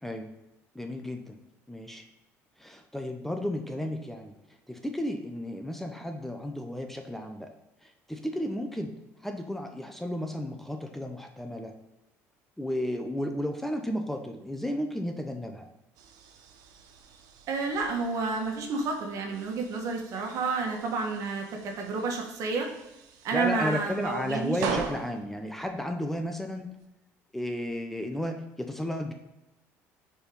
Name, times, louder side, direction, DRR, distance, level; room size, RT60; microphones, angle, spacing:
voice 1, 0.7-1.4 1.7-2.0 2.6-4.3 4.7-7.5 7.8-8.9 9.2-11.7 12.6-15.7 23.3-26.7 27.3-29.1, left 1 dB, 5° left, 4 dB, 0.7 m, -33 dB
sound 1, 15.9-26.9, right 6 dB, 75° right, 0.8 m, -42 dB
voice 2, 17.5-22.7 23.2-24.6, right 4 dB, 60° right, 2 dB, 1.6 m, -30 dB
4.5 x 4.3 x 5.2 m, 0.99 s
cardioid pair, 105°, 6 cm